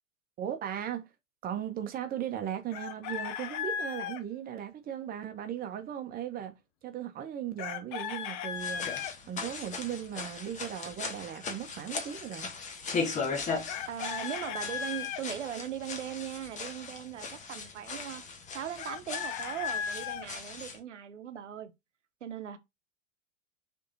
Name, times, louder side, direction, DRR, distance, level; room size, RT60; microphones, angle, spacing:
voice 1, 0.4-1.0 1.4-6.6 6.8-8.9 9.3-12.5, right 10 dB, 25° right, 1.1 m, -37 dB
Chicken rooster, 2.7-4.2 7.6-9.1 13.7-15.2 18.8-20.3, left 8 dB, 35° left, 0.8 m, -36 dB
sound 1, 8.5-20.8, left 4 dB, 20° left, 1.3 m, -38 dB
voice 2, 13.9-18.2 18.5-21.7 22.2-22.6, right 10 dB, 65° right, 1.1 m, -39 dB
6.5 x 3.7 x 4.2 m
figure-of-eight pair, 95°, 38 cm